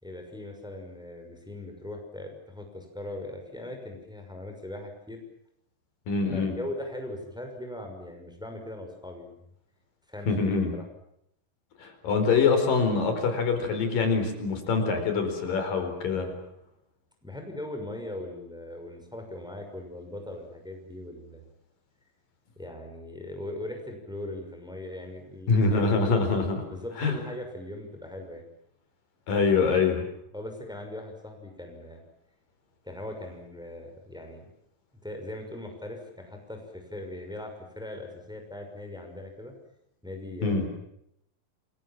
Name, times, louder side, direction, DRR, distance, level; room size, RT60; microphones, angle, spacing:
voice 1, 0.0-5.2 6.3-9.3 10.1-10.8 17.2-21.4 22.6-26.2 26.7-28.5 30.3-32.0 32.8-34.5 35.0-39.5 40.0-40.7, left 1 dB, ahead, 3 dB, 5.8 m, -40 dB
voice 2, 6.1-6.5 10.3-10.7 11.8-16.3 25.5-26.6 27.0-27.1 29.3-30.1 40.4-40.7, left 4 dB, 85° left, 7 dB, 6.0 m, -24 dB
28.5 x 23.5 x 7.5 m, 0.76 s
omnidirectional pair, 3.8 m